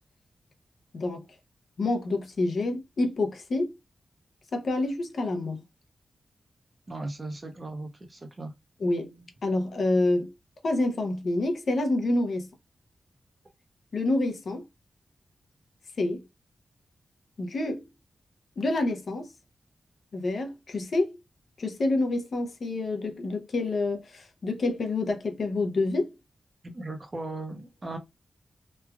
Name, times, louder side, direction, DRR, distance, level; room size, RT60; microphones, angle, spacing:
voice 1, 0.9-1.2 1.8-3.7 4.5-5.6 8.8-10.3 10.6-12.5 13.9-14.6 16.0-16.2 17.4-17.8 18.6-19.3 20.1-21.2 21.6-26.1, left 2 dB, 60° left, 0.6 m, -27 dB
voice 2, 6.9-8.5 26.6-28.0, right 2 dB, 30° right, 0.6 m, -37 dB
3.1 x 2.3 x 2.2 m
wide cardioid pair, 145°, 0 cm